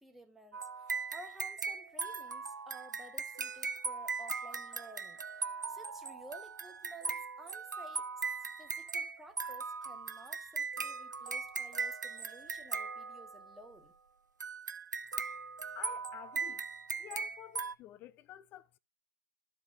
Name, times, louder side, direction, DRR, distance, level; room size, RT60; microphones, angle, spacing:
voice 1, 0.0-8.0 8.6-13.9, right 1 dB, ahead, 0.9 m, -54 dB
sound 1, 0.5-13.6 14.4-17.7, right 5 dB, 90° right, 0.4 m, -39 dB
voice 2, 15.7-16.6 17.0-18.8, left 14 dB, 20° left, 0.3 m, -50 dB
13.0 x 4.8 x 2.6 m
figure-of-eight pair, 125°, 10 cm